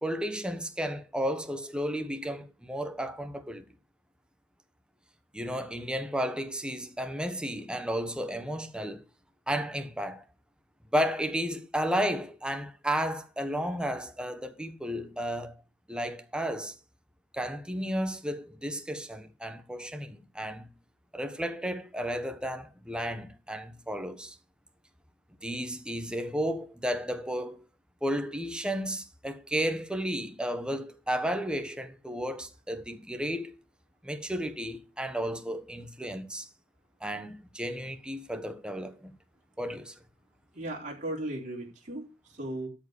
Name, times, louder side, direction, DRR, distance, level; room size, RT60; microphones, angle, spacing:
voice 1, 0.0-3.6 5.3-9.0 9.5-10.2 10.9-15.5 15.9-16.7 17.3-20.7 21.1-24.3 25.4-27.6 28.0-33.5 34.0-36.5 37.0-39.1 39.6-39.9, equal, 5° right, 1.2 m, -33 dB
voice 2, 40.5-42.7, right 1 dB, 40° right, 3.8 m, -36 dB
13.0 x 5.0 x 6.5 m
head